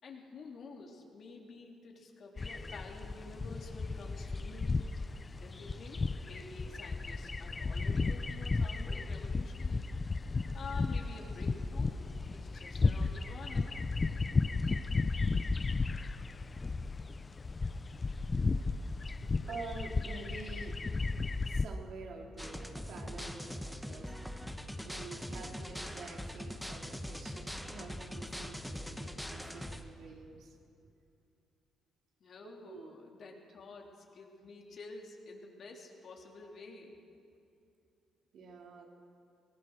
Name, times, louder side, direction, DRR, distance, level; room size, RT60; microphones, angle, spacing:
voice 1, 0.0-4.8 5.4-9.8 10.5-13.8 32.2-37.0, left 4 dB, 55° left, 0 dB, 3.5 m, -50 dB
sound 1, 2.4-21.7, left 3 dB, 30° left, 0.7 m, -34 dB
voice 2, 19.5-20.8 21.4-24.1 24.8-30.5 32.4-32.9 33.3-33.4 38.3-38.9, right 4 dB, 70° right, 0 dB, 3.5 m, -48 dB
sound 2, 22.4-29.8, equal, ahead, 1.6 m, -42 dB
24.0 x 19.0 x 6.5 m, 2.5 s
cardioid pair, 90°, 0 cm